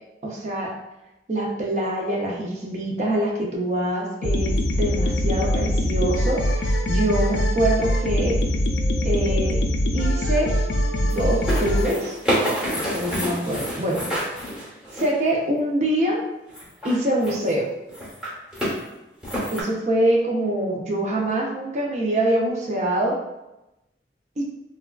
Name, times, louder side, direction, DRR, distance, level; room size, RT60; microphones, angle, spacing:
voice 1, 0.2-0.7 1.3-8.4 9.0-9.6 9.9-10.5 11.0-12.2 12.7-14.0 14.9-16.2 16.8-17.7 19.5-23.2 24.4-24.5, right 1 dB, 40° right, -1 dB, 0.5 m, -24 dB
sound 1, 4.2-11.9, left 1 dB, 80° left, 0.4 m, -22 dB
sound 2, 11.1-15.2 16.5-17.5 17.9-18.8 19.2-19.6, equal, 5° right, 0.8 m, -28 dB
3.3 x 2.2 x 2.3 m, 0.95 s
head